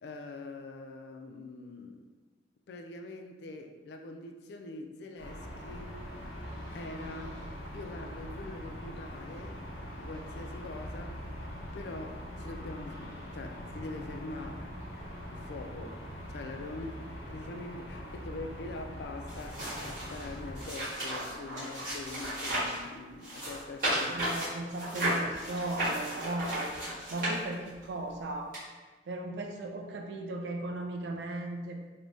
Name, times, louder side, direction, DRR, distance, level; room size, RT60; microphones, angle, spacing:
voice 1, 0.0-2.1 2.7-6.0 6.7-7.4 7.7-14.7 15.3-16.0 16.3-24.2, left 2 dB, 65° left, 4 dB, 0.3 m, -44 dB
sound 1, 5.2-20.7, equal, 85° left, 0.7 m, -42 dB
Wind instrument woodwind instrument, 11.1-15.5, left 4 dB, 5° left, 0.5 m, -55 dB
sound 2, 19.3-22.8 23.2-27.8 28.5-28.6, right 1 dB, 50° right, 1.3 m, -34 dB
voice 2, 23.9-26.8 27.1-28.5 29.1-31.9, right 2 dB, 75° right, 3 dB, 0.4 m, -36 dB
3.3 x 2.2 x 2.5 m, 1.3 s
head